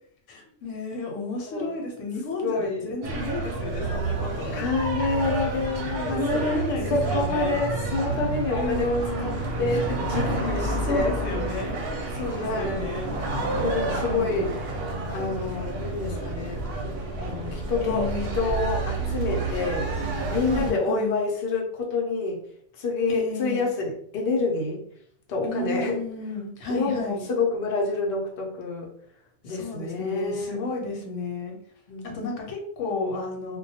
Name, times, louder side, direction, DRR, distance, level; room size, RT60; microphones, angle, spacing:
voice 1, 0.3-4.6 6.1-7.6 8.5-9.4 10.3-11.7 12.2-13.1 14.1-14.5 17.8-18.4 20.5-21.2 23.1-23.6 25.4-27.2 29.5-31.6 32.0-33.6, left 3 dB, 90° left, 1 dB, 1.0 m, -32 dB
voice 2, 2.3-2.9 4.5-6.5 6.9-11.2 12.3-12.9 13.5-14.6 15.1-16.7 17.2-19.9 20.3-22.4 22.8-24.8 25.3-26.0 26.7-28.9 29.4-30.6 31.9-32.2, left 3 dB, 60° left, -1 dB, 0.7 m, -28 dB
sound 1, 3.0-20.7, right 2 dB, 60° right, 0.8 m, -29 dB
2.2 x 2.2 x 2.7 m, 0.63 s
omnidirectional pair, 1.3 m